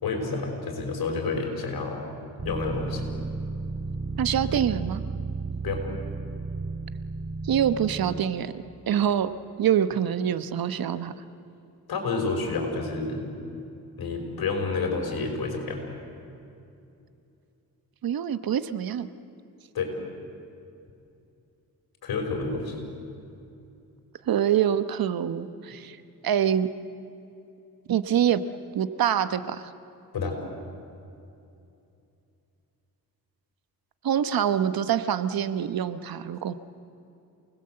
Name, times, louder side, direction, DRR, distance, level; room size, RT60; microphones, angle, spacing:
voice 1, 0.0-2.0 2.4-3.1 5.6-5.8 11.9-13.2 14.0-15.8 19.7-19.9 22.0-22.9 30.1-30.4, left 4 dB, 75° left, 2 dB, 5.4 m, -29 dB
sound 1, 2.4-8.2, right 4 dB, 40° right, 2.9 m, -33 dB
voice 2, 4.2-5.0 7.4-8.5 8.9-9.3 9.6-11.1 18.0-19.1 24.3-26.0 26.2-26.7 27.9-28.4 28.7-29.7 34.0-36.5, right 9 dB, 70° right, 12 dB, 1.1 m, -25 dB
28.5 x 20.0 x 7.8 m, 2.7 s
cardioid pair, 90°, 37 cm